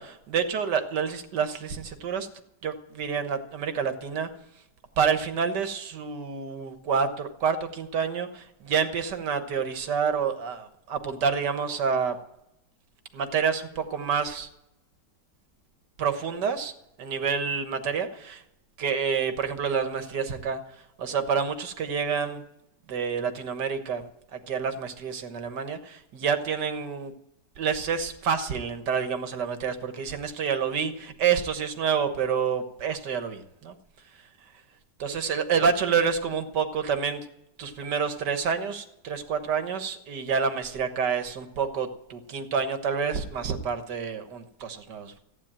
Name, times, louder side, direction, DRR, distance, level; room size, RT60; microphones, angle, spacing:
voice 1, 0.0-2.3 2.6-4.3 5.0-12.2 13.1-14.5 16.0-16.7 17.0-18.4 18.8-20.6 21.0-22.4 22.9-27.1 27.6-33.8 35.0-37.2 37.6-45.2, right 6 dB, 70° right, 8 dB, 1.9 m, -28 dB
15.0 x 9.3 x 8.8 m, 0.86 s
omnidirectional pair, 1.9 m